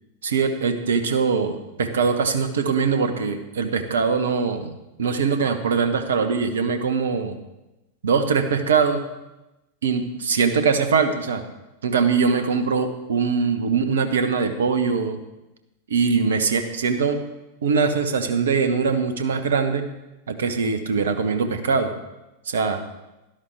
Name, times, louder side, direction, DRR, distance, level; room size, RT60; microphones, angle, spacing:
voice 1, 0.2-4.7 5.0-7.4 8.0-9.0 9.8-11.4 11.8-15.2 15.9-17.2 17.6-19.8 20.3-21.9 22.5-22.8, right 5 dB, 65° right, 8 dB, 1.1 m, -22 dB
12.5 x 11.5 x 3.5 m, 0.99 s
figure-of-eight pair, 90°, 0 cm